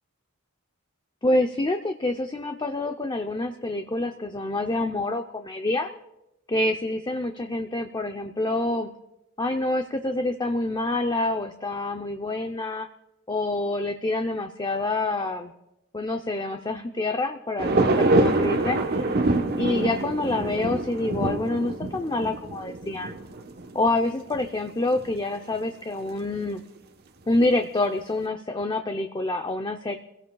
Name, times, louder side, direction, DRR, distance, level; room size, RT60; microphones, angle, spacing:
voice 1, 1.2-5.9 6.5-8.9 9.4-12.9 13.3-15.5 15.9-19.1 19.6-23.1 23.7-26.6 27.3-30.0, left 2 dB, 20° left, 5 dB, 0.6 m, -27 dB
sound 1, 17.6-24.4 24.7-24.8 25.0-25.2 26.1-26.2, right 2 dB, 50° right, 1.1 m, -25 dB
29.5 x 16.5 x 2.3 m, 0.90 s
head